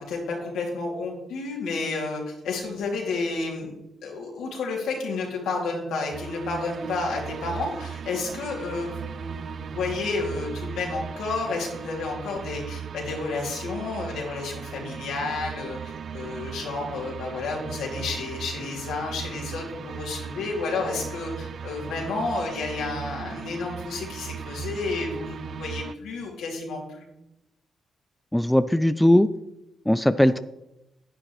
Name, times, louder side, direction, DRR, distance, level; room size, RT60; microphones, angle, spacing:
voice 1, 0.0-3.7 4.0-27.1 30.2-30.4, left 3 dB, 80° left, -1 dB, 2.7 m, -31 dB
sound 1, 6.1-26.0, right 7 dB, 60° right, 0.3 m, -37 dB
voice 2, 28.3-29.3 29.9-30.4, left 1 dB, 5° left, 13 dB, 0.4 m, -19 dB
10.0 x 9.9 x 3.2 m, 0.90 s
supercardioid pair, 50°, 0 cm